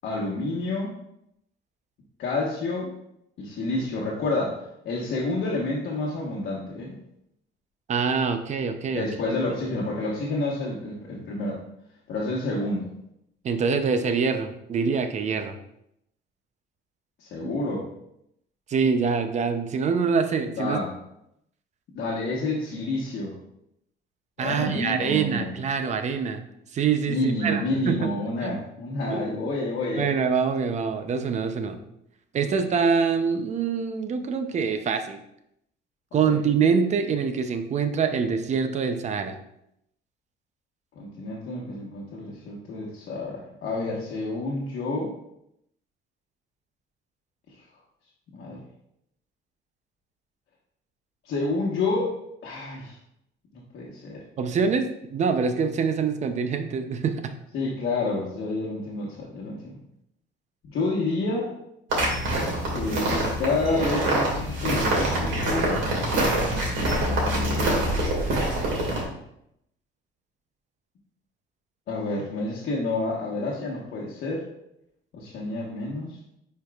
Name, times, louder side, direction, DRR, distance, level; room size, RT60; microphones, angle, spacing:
voice 1, 0.0-0.9 2.2-2.9 3.4-7.0 8.9-11.6 12.1-12.9 17.2-17.8 20.6-20.9 21.9-23.3 24.4-25.5 27.1-30.1 36.3-36.4 40.9-45.1 48.3-48.6 51.2-52.1 52.4-53.0 53.7-54.2 57.5-59.8 60.7-61.5 62.7-65.9 66.9-68.0 71.9-74.4 75.1-76.2, left 2 dB, 60° left, -5 dB, 1.2 m, -29 dB
voice 2, 7.9-9.1 13.4-15.6 17.4-17.5 18.7-20.8 24.4-26.4 26.7-28.1 28.4-28.6 29.1-29.3 29.9-31.8 32.3-35.2 36.1-39.4 54.4-57.3, right 5 dB, 35° right, 8 dB, 0.6 m, -25 dB
sound 1, 61.9-69.0, right 1 dB, 75° right, 2.2 m, -25 dB
9.7 x 4.6 x 2.4 m, 0.78 s
cardioid pair, 160°, 20 cm